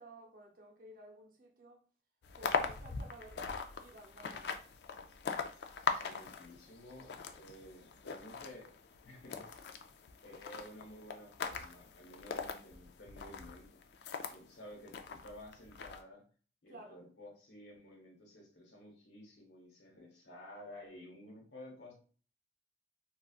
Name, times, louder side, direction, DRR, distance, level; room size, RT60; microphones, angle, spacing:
voice 1, 0.0-1.8 2.4-4.5 16.7-17.0, right 1 dB, 50° right, 0.6 m, -54 dB
sound 1, 2.2-14.4 14.9-16.0, left 5 dB, 65° left, 0.3 m, -41 dB
voice 2, 5.9-8.7 9.0-9.4 10.2-13.8 14.3-16.2 16.6-21.9, left 1 dB, 85° left, 1.3 m, -53 dB
3.8 x 2.3 x 2.4 m
head